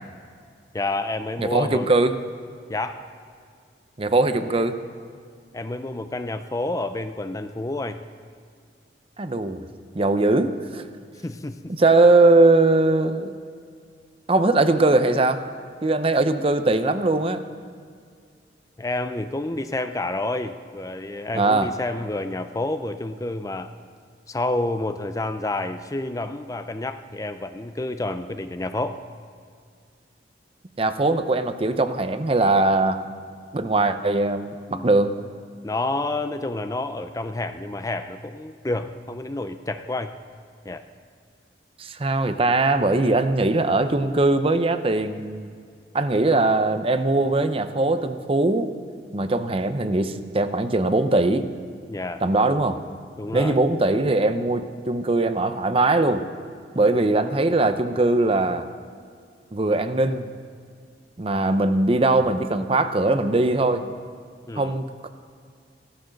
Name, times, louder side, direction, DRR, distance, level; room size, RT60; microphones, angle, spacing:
voice 1, 0.7-1.9 2.7-3.0 5.5-8.0 11.2-11.6 18.8-23.7 24.3-29.0 34.7-34.9 35.6-40.1 40.7-40.8 51.9-52.2 53.2-53.6 56.7-56.9 64.5-64.8, left 2 dB, 20° left, 9 dB, 0.5 m, -29 dB
voice 2, 1.4-2.2 4.0-4.8 9.2-9.7 9.9-10.8 11.7-13.3 14.3-15.4 15.8-17.4 21.3-21.7 30.8-33.0 33.5-35.2 41.8-45.6 45.9-48.7 49.1-51.5 52.2-52.8 53.3-56.3 56.7-58.7 59.5-60.3 61.2-63.8 64.6-65.1, right 2 dB, 30° right, 10 dB, 0.7 m, -21 dB
15.5 x 13.0 x 6.4 m, 2.2 s
head